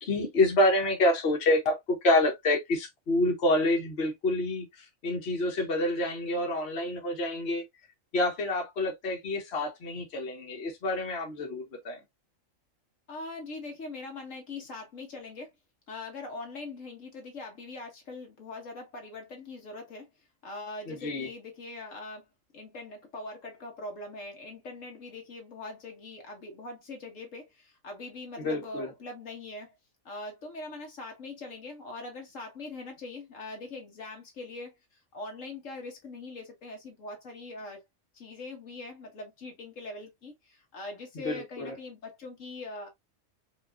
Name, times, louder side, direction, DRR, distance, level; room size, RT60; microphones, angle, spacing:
voice 1, 0.0-1.8 2.0-7.6 8.1-12.0 20.9-21.3 28.4-28.9 41.2-41.7, left 1 dB, 55° left, 1.4 m, -27 dB
voice 2, 13.1-15.5 15.9-20.1 20.4-22.3 22.5-29.8 30.0-37.8 38.1-42.9, left 2 dB, 75° left, 1.5 m, -42 dB
4.9 x 2.9 x 2.5 m
omnidirectional pair, 1.3 m